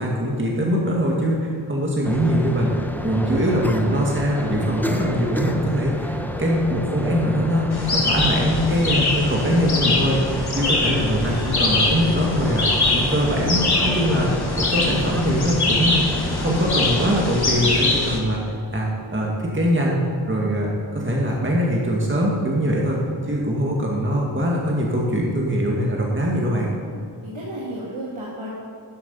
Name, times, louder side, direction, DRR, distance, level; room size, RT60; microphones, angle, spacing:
voice 1, 0.0-2.7 3.0-10.2 10.6-18.4 18.7-20.0 20.3-23.0 23.3-26.7, equal, 25° right, -3 dB, 2.0 m, -22 dB
sound 1, 2.0-17.3, left 1 dB, 5° left, 0.9 m, -30 dB
sound 2, 7.7-18.2, left 2 dB, 55° left, 1.7 m, -23 dB
voice 2, 9.7-11.0 26.9-28.5, right 1 dB, 85° right, -7 dB, 2.0 m, -35 dB
sound 3, 11.2-16.2, right 1 dB, 70° left, 2.9 m, -39 dB
12.5 x 7.2 x 5.5 m, 2.3 s
wide cardioid pair, 50°, 47 cm